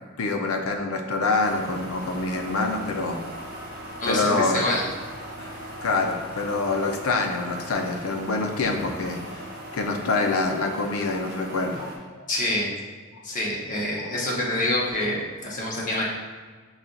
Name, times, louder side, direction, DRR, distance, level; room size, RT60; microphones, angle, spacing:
voice 1, 0.2-3.2 4.0-4.6 5.4-12.3 15.9-16.0, left 3 dB, 80° left, 4 dB, 0.5 m, -26 dB
sound 1, 1.4-12.0, right 1 dB, 45° right, 0.8 m, -39 dB
voice 2, 4.0-4.9 12.3-12.7 13.2-16.1, left 1 dB, 40° left, -4 dB, 0.9 m, -26 dB
5.6 x 2.4 x 3.8 m, 1.5 s
head